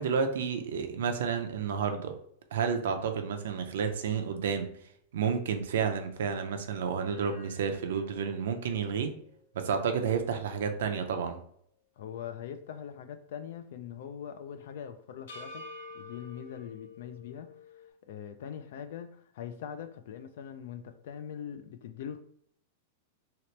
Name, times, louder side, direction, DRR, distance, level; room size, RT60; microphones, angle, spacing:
voice 1, 0.0-2.1 2.5-4.7 5.1-9.1 9.5-11.4, right 6 dB, 75° right, 7 dB, 0.5 m, -30 dB
sound 1, 7.1-11.4 11.8-11.9 15.3-17.9, left 2 dB, 85° left, 0.9 m, -50 dB
voice 2, 12.0-15.7 15.9-17.5 18.0-22.2, left 8 dB, 60° left, 10 dB, 0.4 m, -42 dB
2.9 x 2.9 x 3.2 m, 0.66 s
supercardioid pair, 175°, 0 cm